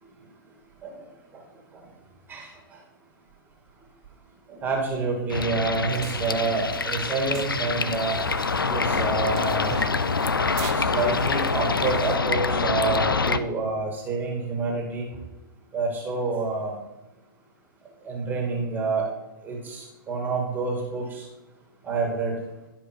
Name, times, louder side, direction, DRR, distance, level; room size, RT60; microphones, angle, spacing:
voice 1, 4.5-8.2 8.7-9.9 10.7-15.1 15.7-16.8 18.0-19.0 19.4-21.3 21.8-22.4, right 3 dB, 15° right, -1 dB, 2.1 m, -28 dB
sound 1, 5.3-13.4, left 4 dB, 90° left, 0.5 m, -25 dB
sound 2, 5.9-12.2, right 9 dB, 45° right, 0.9 m, -40 dB
12.0 x 5.1 x 4.5 m, 1.1 s
figure-of-eight pair, 115°, 11 cm